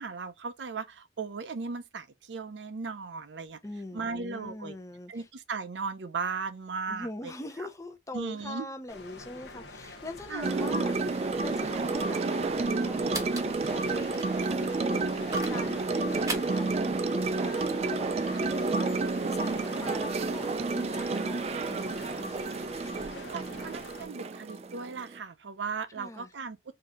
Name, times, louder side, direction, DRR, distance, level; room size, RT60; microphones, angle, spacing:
voice 1, 0.0-3.6 3.9-4.8 5.1-7.3 7.6-7.7 8.1-8.7 10.3-10.9 23.3-26.6, right 4 dB, 85° right, 0.6 m, -37 dB
voice 2, 3.6-5.3 6.9-20.5 20.7-22.4 25.9-26.3, left 2 dB, 20° left, 0.6 m, -42 dB
sound 1, 8.9-24.1, left 2 dB, 80° left, 0.8 m, -46 dB
sound 2, 10.4-25.2, right 3 dB, 35° right, 0.3 m, -30 dB
sound 3, 11.4-17.9, right 3 dB, 20° right, 0.8 m, -42 dB
3.7 x 2.8 x 3.6 m
head